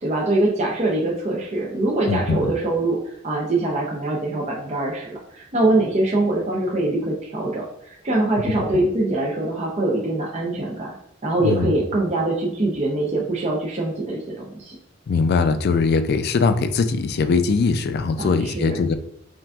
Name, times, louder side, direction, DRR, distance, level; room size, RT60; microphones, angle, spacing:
voice 1, 0.0-10.9 11.2-14.8 18.2-18.7, right 2 dB, 35° right, -3 dB, 0.6 m, -23 dB
voice 2, 2.1-2.5 11.4-11.7 15.1-18.9, left 4 dB, 55° left, 10 dB, 0.3 m, -21 dB
5.8 x 2.5 x 2.3 m, 0.78 s
head